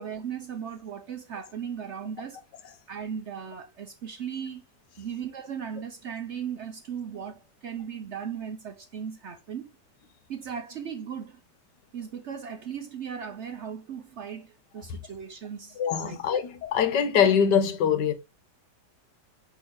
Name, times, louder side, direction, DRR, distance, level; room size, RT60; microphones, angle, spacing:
voice 1, 0.0-2.4 2.9-4.6 5.0-9.7 10.3-11.4 11.9-16.4, right 7 dB, 65° right, 0.7 m, -37 dB
voice 2, 15.8-18.1, left 7 dB, 85° left, 1.6 m, -23 dB
5.8 x 5.3 x 3.1 m
omnidirectional pair, 1.9 m